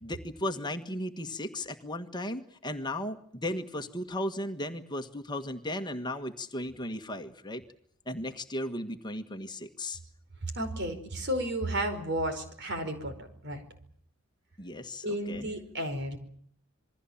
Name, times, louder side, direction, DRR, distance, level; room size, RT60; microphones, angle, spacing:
voice 1, 0.0-7.6 8.1-10.0 14.6-15.5, left 1 dB, 20° left, 6 dB, 1.6 m, -36 dB
voice 2, 10.5-13.6 15.0-16.2, right 1 dB, 55° right, 8 dB, 4.8 m, -33 dB
27.5 x 21.5 x 7.3 m, 0.63 s
head